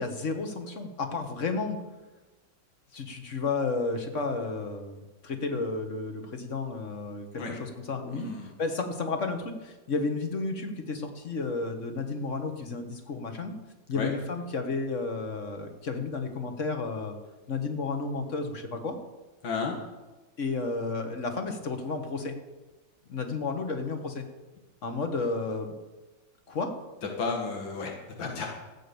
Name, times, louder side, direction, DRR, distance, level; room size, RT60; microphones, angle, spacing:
voice 1, 0.0-1.8 2.9-8.3 8.6-13.5 13.9-17.2 17.5-19.0 20.4-22.3 23.1-24.3 24.8-25.8 26.5-26.7, left 3 dB, 45° left, 5 dB, 1.7 m, -32 dB
voice 2, 8.1-8.5 13.9-14.1 19.4-19.8 27.2-28.5, left 4 dB, 85° left, 1 dB, 2.3 m, -32 dB
14.0 x 8.7 x 7.0 m, 1.2 s
omnidirectional pair, 2.0 m